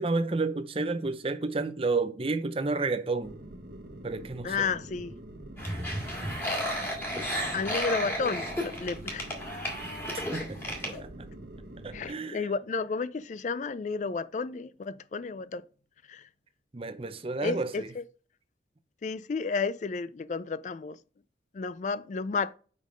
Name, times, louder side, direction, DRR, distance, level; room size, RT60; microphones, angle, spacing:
voice 1, 0.0-3.3 4.0-4.7 10.3-11.3 11.8-12.5 16.7-17.9, right 3 dB, 30° right, 0.6 m, -31 dB
sound 1, 3.2-12.1, right 1 dB, 65° right, 1.1 m, -45 dB
voice 2, 4.4-5.1 7.3-9.3 9.6-9.7 10.2-10.3 11.9-15.6 16.1-16.3 17.4-18.0 19.0-21.0 21.5-22.5, left 4 dB, 40° left, 0.3 m, -32 dB
sound 2, 5.6-11.0, equal, 10° left, 1.8 m, -33 dB
5.4 x 5.2 x 5.0 m
head